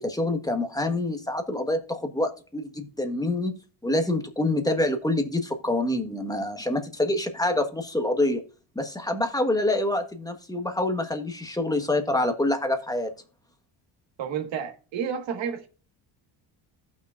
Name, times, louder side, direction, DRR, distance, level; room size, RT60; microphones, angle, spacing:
voice 1, 0.0-3.6 3.8-8.4 8.7-13.1, left 1 dB, 10° left, 1.4 m, -26 dB
voice 2, 14.2-15.7, right 7 dB, 65° right, 1.7 m, -31 dB
15.0 x 6.0 x 2.5 m
cardioid pair, 100°, 49 cm